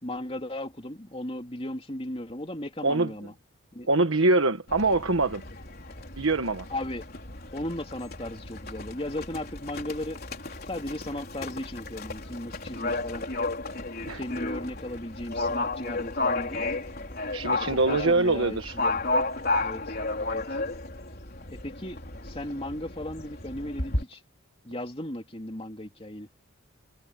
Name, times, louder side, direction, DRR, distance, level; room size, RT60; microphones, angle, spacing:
voice 1, 0.0-3.3 3.7-3.9 6.7-7.0 7.5-10.2 10.7-13.2 14.1-16.7 17.6-19.0 19.6-19.9 20.2-20.6 21.5-22.0 22.2-24.2 24.6-26.3, left 1 dB, 25° left, 3.3 m, -36 dB
voice 2, 3.9-5.4 6.2-6.7 14.1-14.2 17.3-18.8, right 2 dB, 70° right, 1.4 m, -24 dB
Livestock farm animals working animals, 4.7-24.0, left 2 dB, 45° left, 4.4 m, -33 dB
head